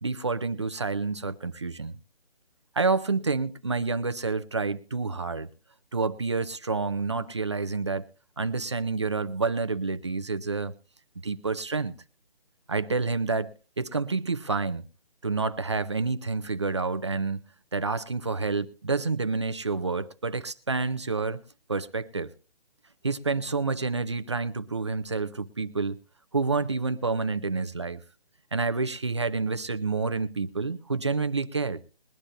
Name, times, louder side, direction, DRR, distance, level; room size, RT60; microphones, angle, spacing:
voice 1, 0.0-1.9 2.8-5.5 5.9-8.1 8.4-10.7 11.2-11.9 12.7-14.8 15.2-17.5 17.7-21.4 21.7-22.3 23.0-26.0 26.3-28.0 28.5-31.8, right 4 dB, 30° right, 0.5 m, -28 dB
21.5 x 11.5 x 2.6 m
figure-of-eight pair, 165°, 30 cm